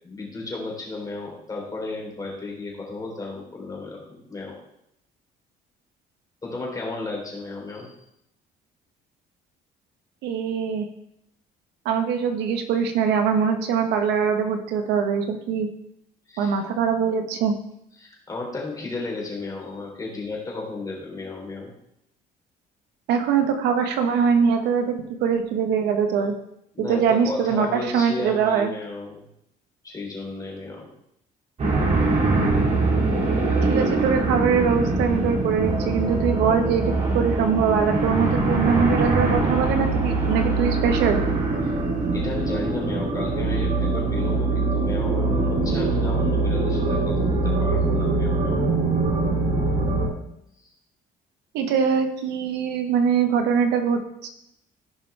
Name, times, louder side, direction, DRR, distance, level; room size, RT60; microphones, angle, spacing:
voice 1, 0.0-4.6 6.4-8.0 16.3-16.6 18.0-21.7 26.7-29.2 29.8-30.9 41.6-41.7 42.1-48.6 50.6-50.7, left 3 dB, 20° left, -2 dB, 3.4 m, -34 dB
voice 2, 10.2-10.9 11.8-15.7 16.4-17.5 23.1-26.3 26.8-28.7 33.7-41.2 51.5-54.3, right 6 dB, 90° right, 6 dB, 1.2 m, -22 dB
sound 1, 31.6-50.1, right 3 dB, 40° right, 2.6 m, -23 dB
15.0 x 5.5 x 3.4 m, 0.77 s
cardioid pair, 110°, 17 cm